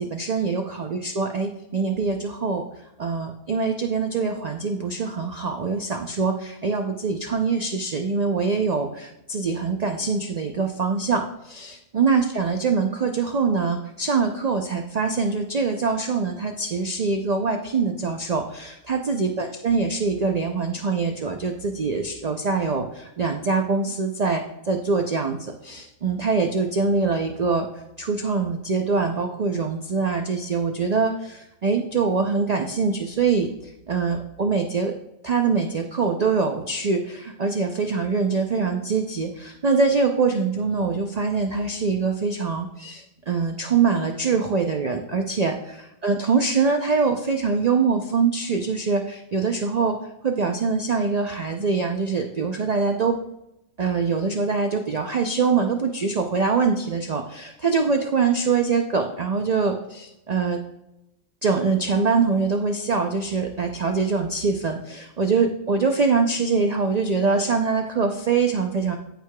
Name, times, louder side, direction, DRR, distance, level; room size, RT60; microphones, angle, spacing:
voice 1, 0.0-2.6 3.0-27.7 28.0-34.9 35.2-45.5 46.0-50.0 50.2-53.2 53.8-60.6 61.4-69.0, right 4 dB, 75° right, 4 dB, 0.3 m, -24 dB
14.0 x 4.7 x 2.2 m, 0.87 s
omnidirectional pair, 1.4 m